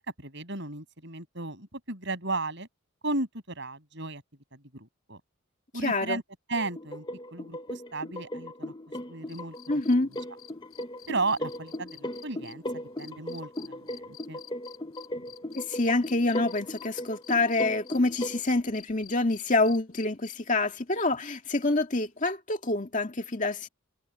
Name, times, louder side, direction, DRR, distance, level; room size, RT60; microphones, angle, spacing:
voice 1, 0.0-2.7 3.0-4.2 4.5-5.2 5.7-6.2 6.5-7.0 7.3-8.7 9.1-9.8 11.1-14.4, right 2 dB, 55° right, 7.2 m, -34 dB
voice 2, 5.8-6.2 9.7-10.1 15.5-23.7, left 2 dB, 35° left, 2.2 m, -27 dB
sound 1, 6.5-18.4, left 1 dB, 20° left, 0.8 m, -38 dB
sound 2, 9.3-16.9 17.2-20.6 22.2-22.3, left 14 dB, 80° left, 7.8 m, -49 dB
head